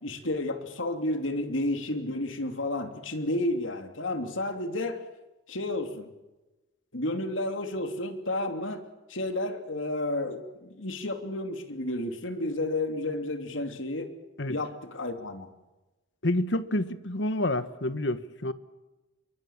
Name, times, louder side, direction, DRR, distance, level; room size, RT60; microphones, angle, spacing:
voice 1, 0.0-5.0 5.5-6.1 6.9-8.8 9.1-14.1 14.5-15.5, left 1 dB, 80° left, 3.1 m, -31 dB
voice 2, 16.2-18.5, left 1 dB, 60° left, 1.4 m, -28 dB
27.5 x 23.5 x 7.5 m
head